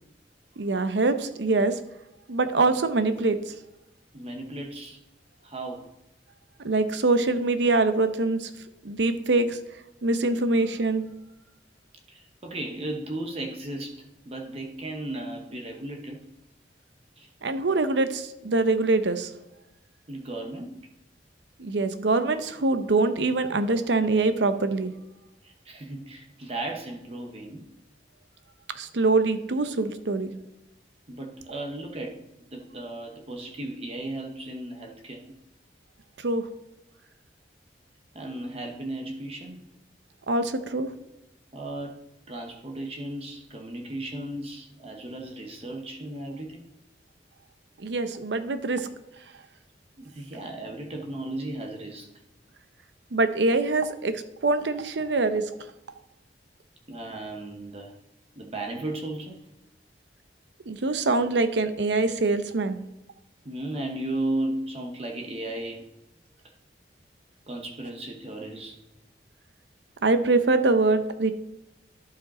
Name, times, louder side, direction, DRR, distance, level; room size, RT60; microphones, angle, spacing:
voice 1, 0.6-1.7 2.3-3.4 6.6-8.5 8.8-9.6 10.0-11.0 17.4-19.3 21.6-24.9 28.8-30.3 36.2-36.4 40.3-40.9 47.8-48.9 53.1-55.4 60.7-62.8 70.0-71.3, right 3 dB, 85° right, 10 dB, 0.7 m, -24 dB
voice 2, 4.1-5.0 5.4-5.9 10.4-10.7 12.1-16.2 17.2-17.3 20.1-20.8 25.4-27.6 31.1-35.3 38.1-39.6 41.5-42.0 42.3-46.7 50.0-52.1 56.9-57.9 58.4-59.4 63.4-65.8 67.5-68.8, right 1 dB, 35° right, 2 dB, 0.8 m, -35 dB
11.5 x 5.0 x 4.2 m, 0.91 s
head